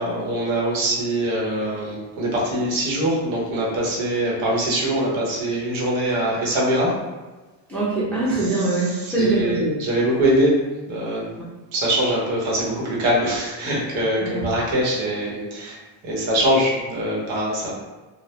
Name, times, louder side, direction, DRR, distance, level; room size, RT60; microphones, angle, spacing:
voice 1, 0.0-6.9 9.0-10.6 10.9-11.3 11.7-15.8 16.0-17.7, right 1 dB, 85° right, -4 dB, 0.9 m, -23 dB
voice 2, 7.7-9.8 14.2-14.5, right 2 dB, 5° left, -9 dB, 0.6 m, -23 dB
2.1 x 2.1 x 2.8 m, 1.2 s
cardioid pair, 100°, 45 cm